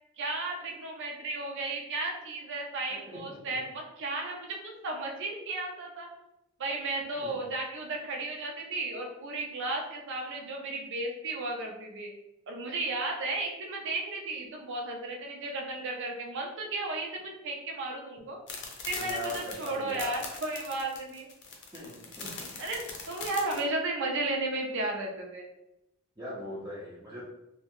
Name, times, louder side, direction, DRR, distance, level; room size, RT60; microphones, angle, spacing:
voice 1, 0.2-6.1 6.6-12.1 12.5-18.4 18.8-21.3 22.6-22.8 23.1-25.5, right 2 dB, 60° right, 1 dB, 0.6 m, -34 dB
voice 2, 2.9-3.4 7.2-7.4 19.0-20.2 21.7-22.5 26.2-27.3, equal, 15° right, -8 dB, 0.6 m, -40 dB
sound 1, 18.5-23.6, left 4 dB, 55° left, 0.6 m, -41 dB
2.7 x 2.2 x 2.9 m, 0.88 s
head